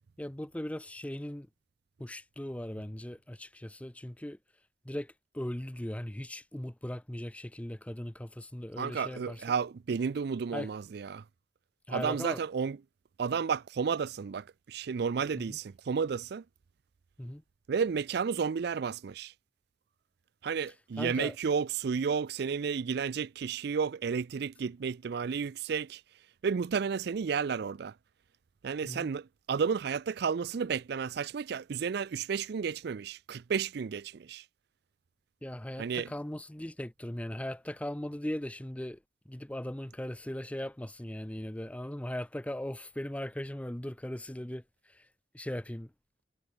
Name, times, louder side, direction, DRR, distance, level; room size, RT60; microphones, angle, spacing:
voice 1, 0.2-1.5 2.0-4.4 4.8-9.4 10.5-10.7 11.9-12.4 15.4-15.6 17.2-17.4 21.0-21.3 28.8-29.1 35.4-39.0 39.3-44.6 44.9-45.0 45.3-45.9, left 1 dB, 10° left, 0.6 m, -38 dB
voice 2, 8.8-11.2 11.9-12.8 13.2-16.4 17.7-19.3 20.4-26.0 26.4-28.0 28.6-34.5 35.8-36.1, right 6 dB, 60° right, 0.4 m, -32 dB
head